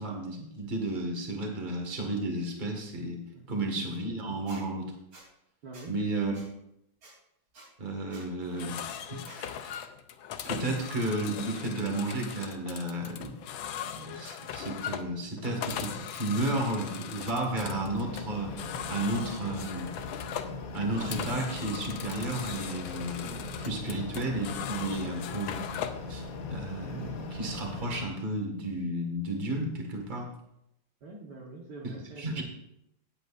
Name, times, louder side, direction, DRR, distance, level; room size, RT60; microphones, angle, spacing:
voice 1, 0.0-3.2 3.5-4.9 5.9-6.3 7.8-8.8 9.1-9.8 10.4-13.3 13.8-18.5 18.9-19.9 20.7-25.6 26.1-30.3 32.2-32.4, right 2 dB, 25° right, 1 dB, 1.8 m, -33 dB
Squeak, 4.5-4.6 5.1-5.2 5.7-5.9 6.3-6.4 7.0-7.1 7.5-7.7 8.1-8.2 8.7-8.8 9.2-9.4, right 2 dB, 80° right, 4.1 m, -50 dB
voice 2, 5.6-6.0 31.0-32.4, right 3 dB, 60° right, -2 dB, 1.7 m, -45 dB
sound 1, 8.4-26.1, left 9 dB, 75° left, 1.5 m, -39 dB
sound 2, 17.6-28.1, left 3 dB, 60° left, 1.4 m, -40 dB
18.0 x 8.0 x 2.5 m, 0.82 s
omnidirectional pair, 2.2 m